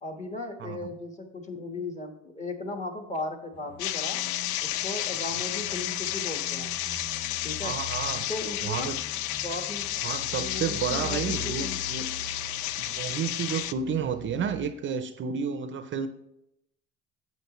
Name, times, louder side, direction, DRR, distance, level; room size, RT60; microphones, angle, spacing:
voice 1, 0.0-4.2 4.6-6.7 7.4-7.7 8.3-8.9 9.4-9.9 10.4-11.8, left 2 dB, 25° left, 4 dB, 1.3 m, -36 dB
sound 1, 3.5-14.6, left 2 dB, 50° left, 2.8 m, -44 dB
sound 2, 3.8-13.7, left 14 dB, 85° left, 0.4 m, -32 dB
voice 2, 7.6-8.3 8.6-9.0 10.0-12.1 12.8-16.1, right 7 dB, 40° right, 10 dB, 0.6 m, -31 dB
8.9 x 7.6 x 3.0 m, 0.81 s
cardioid pair, 115°, 29 cm